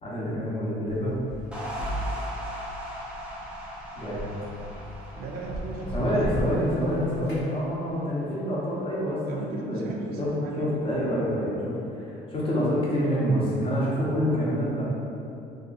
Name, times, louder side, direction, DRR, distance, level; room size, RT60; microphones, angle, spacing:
voice 1, 0.0-1.1 4.0-4.3 5.9-9.4 9.7-9.9 10.2-10.3 10.6-14.8, equal, 35° left, -6 dB, 0.7 m, -27 dB
sound 1, 0.9-7.5, right 1 dB, 75° left, 0.8 m, -37 dB
sound 2, 1.5-8.0, equal, 5° right, 0.5 m, -39 dB
voice 2, 5.2-6.1 9.3-10.7, right 2 dB, 70° right, -1 dB, 0.4 m, -35 dB
2.7 x 2.3 x 2.4 m, 2.6 s
cardioid pair, 110°, 17 cm